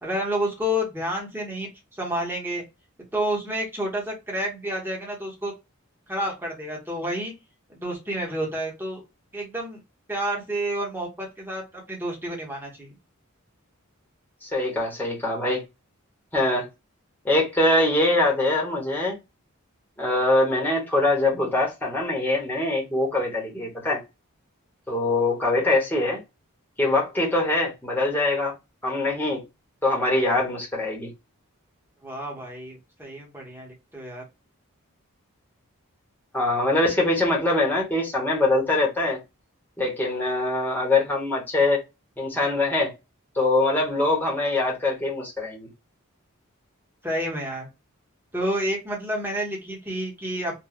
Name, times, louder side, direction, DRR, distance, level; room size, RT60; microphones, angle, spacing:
voice 1, 0.0-1.7 2.0-2.6 3.1-5.5 6.1-7.3 7.7-9.0 9.3-9.8 10.1-11.6 11.9-12.9 32.0-34.2 47.0-47.7 48.3-50.6, equal, 10° right, 1.0 m, -29 dB
voice 2, 14.4-15.6 16.3-16.7 17.2-19.2 20.0-24.0 24.9-26.2 26.8-28.5 28.8-29.4 29.8-31.1 36.3-39.2 39.8-41.8 42.2-42.9 43.3-45.7, left 2 dB, 10° left, 1.0 m, -23 dB
3.1 x 2.2 x 2.3 m
head